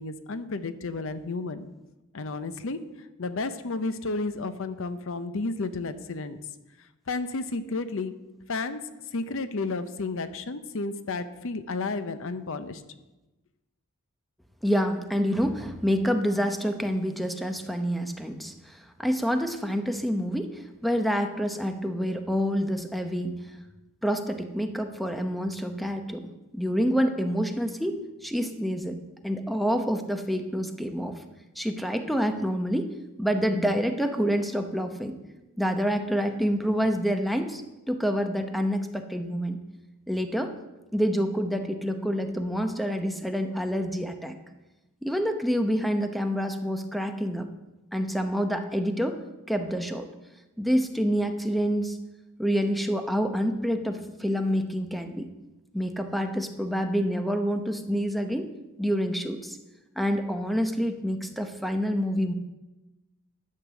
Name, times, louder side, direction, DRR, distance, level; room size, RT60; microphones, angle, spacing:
voice 1, 0.0-1.7 2.1-6.4 6.8-8.1 8.5-8.8 9.1-12.8, left 3 dB, 65° left, 11 dB, 0.7 m, -32 dB
voice 2, 14.6-23.3 24.0-26.2 26.5-29.0 29.2-31.2 31.6-32.9 33.2-35.2 35.6-37.6 37.9-39.6 40.1-40.5 40.9-44.4 45.0-47.5 47.9-49.2 49.5-50.1 50.6-52.0 52.4-55.3 55.7-58.5 58.8-59.6 60.0-62.3, equal, ahead, 6 dB, 0.7 m, -27 dB
11.0 x 6.7 x 7.4 m, 1.0 s
head